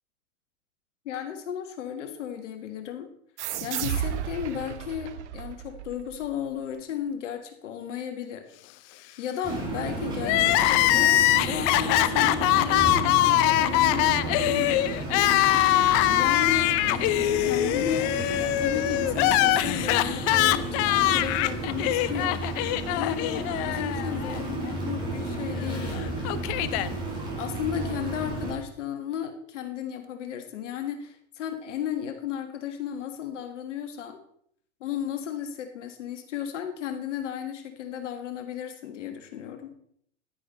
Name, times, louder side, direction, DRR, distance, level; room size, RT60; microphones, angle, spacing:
voice 1, 1.1-3.1 3.6-8.5 9.2-14.9 16.1-22.4 23.0-26.3 27.4-34.2 34.8-39.8, left 9 dB, 80° left, 7 dB, 1.7 m, -34 dB
sound 1, 3.4-6.6, right 10 dB, 70° right, 1.2 m, -33 dB
sound 2, 9.4-28.5, right 2 dB, 15° right, 5.5 m, -32 dB
Crying sobbing, 10.2-24.4 24.7-24.8 25.7-26.9, left 15 dB, 45° left, 0.7 m, -23 dB
11.0 x 9.7 x 4.3 m, 0.67 s
hypercardioid pair, 110°, 36 cm